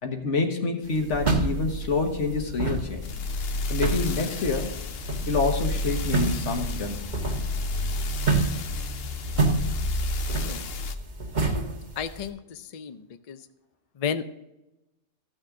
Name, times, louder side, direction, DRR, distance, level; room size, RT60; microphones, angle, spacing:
voice 1, 0.0-3.0 3.7-4.7 5.3-7.0, left 3 dB, 80° left, 3 dB, 1.6 m, -27 dB
sound 1, 0.8-12.3, right 3 dB, 40° right, 1.5 m, -29 dB
sound 2, 1.1-10.9, left 2 dB, 60° left, 0.9 m, -32 dB
voice 2, 12.0-13.5 13.9-14.2, left 7 dB, 45° left, 10 dB, 0.5 m, -33 dB
14.0 x 6.3 x 3.7 m, 0.94 s
omnidirectional pair, 1.2 m